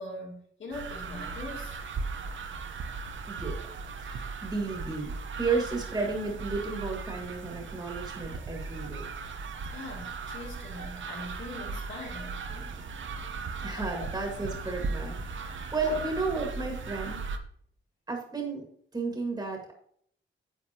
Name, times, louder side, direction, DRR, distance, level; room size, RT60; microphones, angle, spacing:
voice 1, 0.0-1.8 9.7-12.9 13.8-14.1 15.5-16.0, left 2 dB, 60° left, -1 dB, 2.8 m, -40 dB
sound 1, 0.7-17.4, right 4 dB, 65° right, 0.9 m, -37 dB
voice 2, 3.3-3.6 4.0-9.1 13.6-17.2 18.1-18.7 18.9-19.7, right 4 dB, 20° right, 1 dB, 1.8 m, -33 dB
10.0 x 7.7 x 2.9 m, 0.63 s
wide cardioid pair, 145°, 21 cm